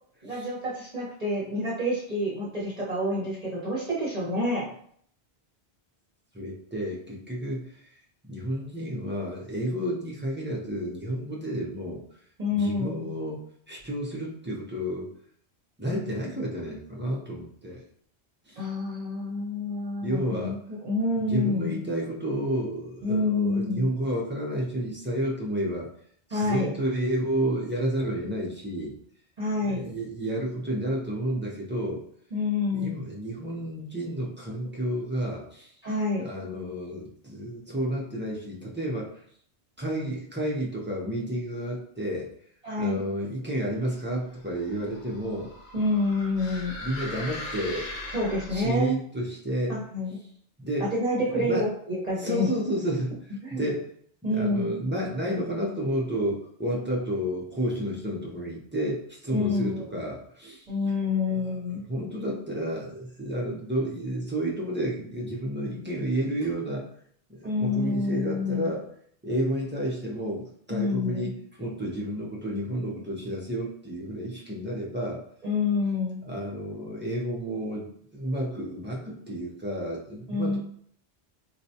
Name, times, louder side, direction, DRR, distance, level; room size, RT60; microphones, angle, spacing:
voice 1, 0.2-4.7 12.4-13.1 18.6-20.6 20.8-21.8 23.0-23.9 26.3-26.7 29.4-29.9 32.3-32.9 35.8-36.2 42.6-43.0 45.7-46.7 48.1-49.0 49.7-50.2 50.8-52.5 53.4-53.6 54.2-54.7 59.3-59.8 60.7-61.8 67.4-68.7 70.7-71.3 75.4-76.2 80.3-80.6, left 2 dB, 40° right, -6 dB, 0.8 m, -28 dB
voice 2, 6.3-7.9 8.3-12.0 12.5-15.1 15.8-17.8 18.5-18.6 20.0-20.6 21.2-25.9 26.3-29.0 29.6-32.0 32.7-35.7 36.2-39.1 39.8-42.3 42.8-45.5 46.8-48.1 48.5-49.8 50.6-50.9 51.3-51.7 52.2-53.2 53.5-53.8 54.2-60.7 61.9-66.9 67.3-68.8 69.2-75.2 76.3-80.6, right 1 dB, 15° right, -4 dB, 0.4 m, -31 dB
sound 1, 44.4-48.8, left 1 dB, 65° left, 0.8 m, -39 dB
4.1 x 2.2 x 2.7 m, 0.63 s
omnidirectional pair, 1.2 m